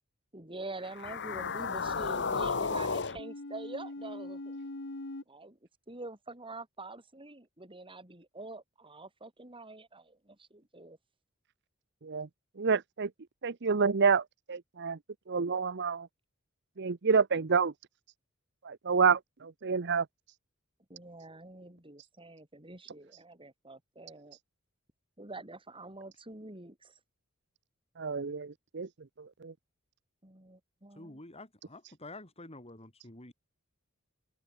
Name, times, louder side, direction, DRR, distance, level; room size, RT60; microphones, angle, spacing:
voice 1, 0.3-4.6 5.3-5.6 5.9-11.0 20.9-24.4 25.2-26.9 30.2-31.2, right 2 dB, 25° right, 6.5 m, -46 dB
sound 1, 0.8-5.2, left 4 dB, 60° left, 1.8 m, -35 dB
voice 2, 12.6-13.1 13.4-14.2 14.5-15.0 15.3-16.1 16.8-17.7 18.6-20.0 28.0-28.5 28.7-28.9 29.4-29.5, right 5 dB, 55° right, 0.8 m, -28 dB
voice 3, 31.0-33.3, left 2 dB, 30° left, 5.6 m, -48 dB
head